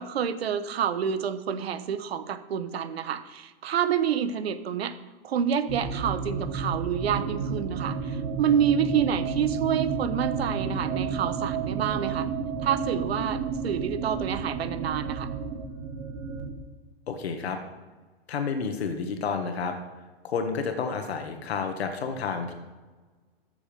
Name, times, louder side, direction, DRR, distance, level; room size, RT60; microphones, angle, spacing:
voice 1, 0.0-5.0 5.2-12.3 12.6-15.3, right 8 dB, 85° right, 12 dB, 1.2 m, -28 dB
sound 1, 5.7-16.5, right 5 dB, 35° right, 2.1 m, -31 dB
voice 2, 17.1-17.6 18.3-19.7 20.2-22.5, left 5 dB, 90° left, 5 dB, 1.7 m, -30 dB
14.0 x 7.2 x 5.2 m, 1.3 s
hypercardioid pair, 145°, 30 cm